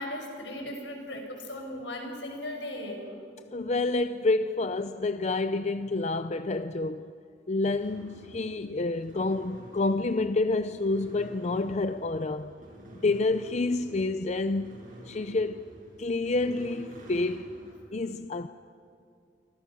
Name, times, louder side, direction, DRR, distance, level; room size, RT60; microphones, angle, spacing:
voice 1, 0.0-3.0, left 1 dB, 80° left, 6.2 m, -37 dB
voice 2, 3.5-7.1 7.5-12.5 13.0-14.8 15.1-15.6 16.0-17.6 17.9-18.5, left 3 dB, 40° left, 0.5 m, -28 dB
sound 1, 7.8-17.7, right 1 dB, 45° right, 7.7 m, -49 dB
28.0 x 24.5 x 6.2 m
head